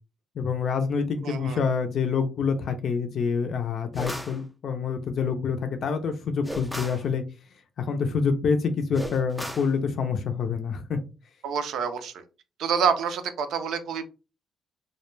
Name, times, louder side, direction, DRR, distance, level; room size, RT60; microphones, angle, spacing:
voice 1, 0.4-7.2 7.8-11.0, left 5 dB, 60° left, 6 dB, 0.4 m, -27 dB
voice 2, 1.2-1.6 11.4-12.1 12.6-14.0, right 6 dB, 75° right, 9 dB, 0.5 m, -27 dB
sound 1, 3.9-4.4 6.4-7.1 8.9-9.7, equal, ahead, 0.4 m, -35 dB
2.2 x 2.1 x 3.1 m, 0.31 s
cardioid pair, 90°, 0 cm